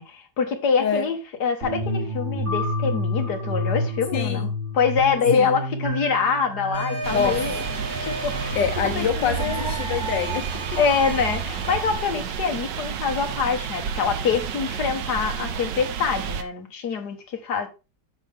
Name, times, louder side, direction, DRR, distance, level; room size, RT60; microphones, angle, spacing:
voice 1, 0.0-4.5 4.7-7.6 8.0-8.6 9.0-9.8 10.8-17.7, left 6 dB, 65° left, 2.0 m, -25 dB
sound 1, 1.6-12.0, equal, 40° right, 2.6 m, -30 dB
voice 2, 4.1-4.5 5.3-5.5 7.1-7.4 8.6-10.8, left 8 dB, 85° left, 1.5 m, -26 dB
sound 2, 6.7-11.8, equal, 65° right, 5.3 m, -35 dB
sound 3, 7.0-16.4, right 7 dB, 85° right, 1.5 m, -31 dB
9.5 x 6.5 x 3.5 m
omnidirectional pair, 1.9 m